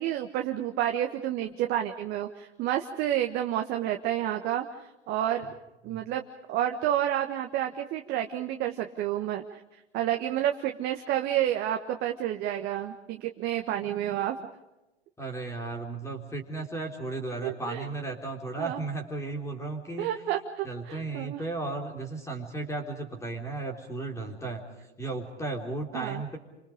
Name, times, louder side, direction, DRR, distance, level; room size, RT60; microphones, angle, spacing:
voice 1, 0.0-4.7 5.1-5.5 5.8-6.2 6.5-9.6 9.9-14.4 17.4-17.9 18.6-18.8 20.0-21.4 25.9-26.2, right 12 dB, 30° right, 5 dB, 1.4 m, -30 dB
voice 2, 15.2-20.1 20.6-24.6 25.0-26.4, right 3 dB, 10° left, 3 dB, 3.7 m, -35 dB
29.0 x 25.5 x 5.1 m, 0.97 s
figure-of-eight pair, 105°, 34 cm